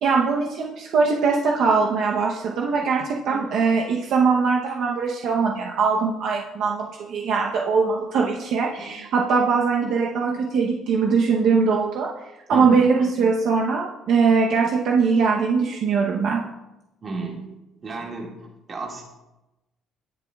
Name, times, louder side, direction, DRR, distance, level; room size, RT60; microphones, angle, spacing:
voice 1, 0.0-12.1 12.5-16.5, right 5 dB, 60° right, -1 dB, 0.8 m, -21 dB
voice 2, 12.5-12.9 17.0-17.5 17.8-19.0, right 3 dB, 30° right, -1 dB, 1.9 m, -33 dB
18.0 x 7.1 x 2.3 m, 0.98 s
cardioid pair, 155°, 0 cm